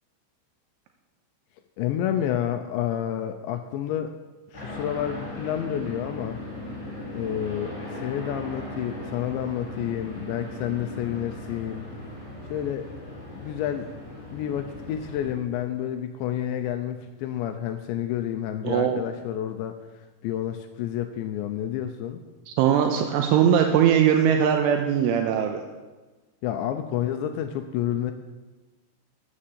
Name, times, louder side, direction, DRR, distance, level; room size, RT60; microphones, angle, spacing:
voice 1, 1.8-4.1 4.5-6.4 7.1-11.9 12.5-12.9 13.3-13.9 14.3-19.8 20.2-22.2 26.4-28.1, left 10 dB, 80° left, 7 dB, 2.6 m, -29 dB
sound 1, 4.5-15.3, left 1 dB, 20° left, 4.6 m, -38 dB
voice 2, 18.6-19.0 22.5-25.6, right 9 dB, 80° right, 4 dB, 3.2 m, -20 dB
13.0 x 8.7 x 7.5 m, 1.2 s
omnidirectional pair, 5.8 m